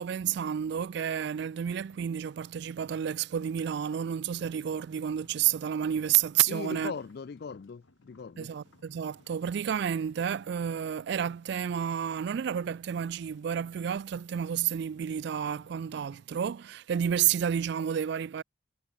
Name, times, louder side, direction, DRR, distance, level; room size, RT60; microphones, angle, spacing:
voice 1, 0.0-6.9 8.4-18.4, right 9 dB, 55° right, 0.3 m, -30 dB
sound 1, 0.6-16.2, left 2 dB, 75° left, 2.2 m, -62 dB
voice 2, 6.5-8.5, left 5 dB, 50° left, 0.4 m, -39 dB
head